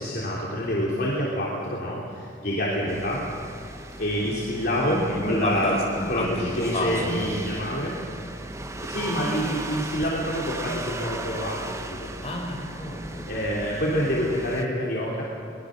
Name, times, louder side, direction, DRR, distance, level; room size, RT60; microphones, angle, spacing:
voice 1, 0.0-3.2 3.6-3.7 4.0-5.8 6.1-8.0 8.8-12.1 13.3-15.2, equal, 55° left, -6 dB, 3.4 m, -27 dB
sound 1, 2.9-14.7, right 2 dB, 15° right, 0.9 m, -37 dB
voice 2, 4.8-7.6 12.2-13.3, left 1 dB, 35° left, 0 dB, 4.3 m, -29 dB
23.0 x 20.5 x 6.6 m, 2.5 s
head